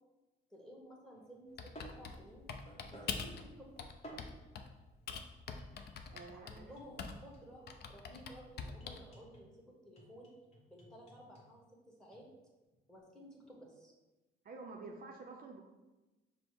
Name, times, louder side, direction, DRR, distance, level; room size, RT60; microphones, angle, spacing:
voice 1, 0.5-2.4 2.9-3.7 6.3-10.3 10.7-11.6 12.0-12.3 12.9-13.9, equal, 5° left, -1 dB, 1.2 m, -55 dB
sound 1, 1.1-4.5 5.6-7.7 8.8-9.5 10.0-11.5 12.1-12.3, right 1 dB, 35° left, 1.1 m, -56 dB
Typing, 1.6-3.4 3.8-4.7 5.1-7.3 7.7-9.1, left 5 dB, 55° left, 0.5 m, -44 dB
voice 2, 6.1-6.7 14.4-15.6, right 3 dB, 50° right, 2 dB, 0.5 m, -49 dB
5.1 x 2.0 x 4.5 m, 1.1 s
cardioid pair, 90°, 20 cm